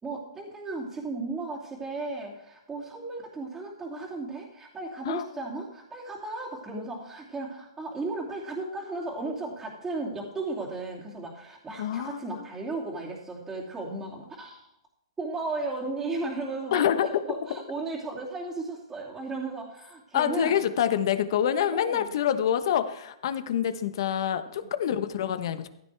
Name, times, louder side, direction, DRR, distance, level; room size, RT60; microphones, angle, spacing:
voice 1, 0.0-14.7 15.2-20.6 21.7-22.2 24.5-24.6, right 3 dB, 10° right, -7 dB, 2.8 m, -35 dB
voice 2, 11.8-12.3 16.7-17.1 20.1-25.7, left 9 dB, 60° left, 11 dB, 1.1 m, -26 dB
15.0 x 12.5 x 3.5 m, 0.80 s
hypercardioid pair, 145°, 3 cm